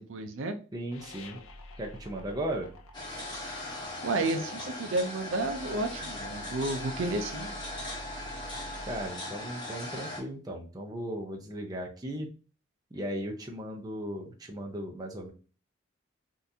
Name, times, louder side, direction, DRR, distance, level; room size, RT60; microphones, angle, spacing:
voice 1, 0.0-0.6 4.0-7.5, right 2 dB, 75° right, 6 dB, 0.5 m, -31 dB
voice 2, 0.7-1.4 1.8-2.7 8.9-12.3 12.9-15.3, right 1 dB, 20° right, 0 dB, 0.6 m, -36 dB
sound 1, 0.9-10.3, left 1 dB, 90° left, 0.5 m, -48 dB
sound 2, 2.9-10.2, left 1 dB, 20° left, 1.0 m, -39 dB
3.8 x 2.5 x 2.7 m, 0.36 s
head